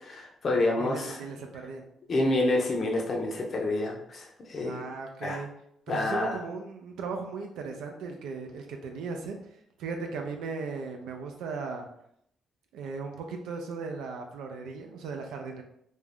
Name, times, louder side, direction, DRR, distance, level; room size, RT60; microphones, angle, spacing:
voice 1, 0.0-1.2 2.1-4.8 5.2-5.4 5.9-6.4, left 2 dB, 45° left, 0 dB, 0.6 m, -28 dB
voice 2, 0.8-1.8 4.6-5.5 5.9-9.4 9.8-11.9 12.7-15.6, right 4 dB, 85° right, 3 dB, 0.4 m, -37 dB
2.5 x 2.3 x 3.4 m, 0.72 s
cardioid pair, 90°, 0 cm